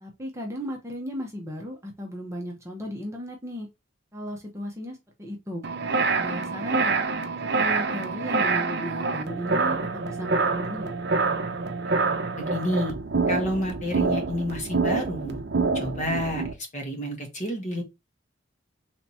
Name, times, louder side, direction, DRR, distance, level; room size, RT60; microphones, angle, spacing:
voice 1, 0.0-3.7 4.1-5.6 6.1-7.0 7.4-10.9, equal, 15° right, 0.8 m, -35 dB
sound 1, 5.6-16.5, right 4 dB, 55° right, 0.6 m, -26 dB
voice 2, 12.4-12.9 13.3-15.4 15.7-16.4 16.7-17.8, equal, 35° left, 1.2 m, -29 dB
3.5 x 2.9 x 4.2 m
head